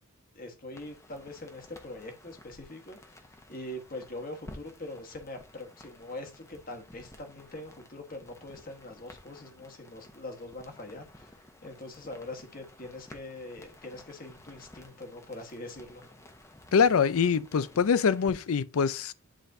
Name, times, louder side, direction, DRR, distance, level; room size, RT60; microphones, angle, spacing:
voice 1, 0.3-3.2 3.5-16.1, left 1 dB, 40° left, 1.2 m, -43 dB
sound 1, 0.7-18.3, left 1 dB, 15° left, 0.9 m, -53 dB
voice 2, 16.7-19.1, left 6 dB, 75° left, 0.4 m, -24 dB
10.0 x 4.1 x 2.6 m
head